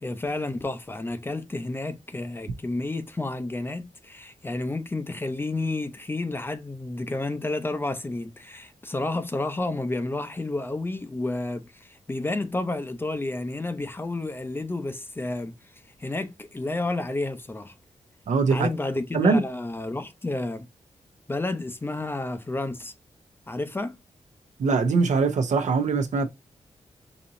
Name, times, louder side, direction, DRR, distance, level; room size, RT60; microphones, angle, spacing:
voice 1, 0.0-15.6 16.0-17.7 18.5-20.7 21.3-22.9 23.5-24.0, left 2 dB, 20° left, 0.5 m, -31 dB
voice 2, 18.3-18.7 19.1-19.4 24.6-26.3, right 4 dB, 80° right, 0.8 m, -22 dB
5.1 x 2.8 x 2.6 m
wide cardioid pair, 145°, 12 cm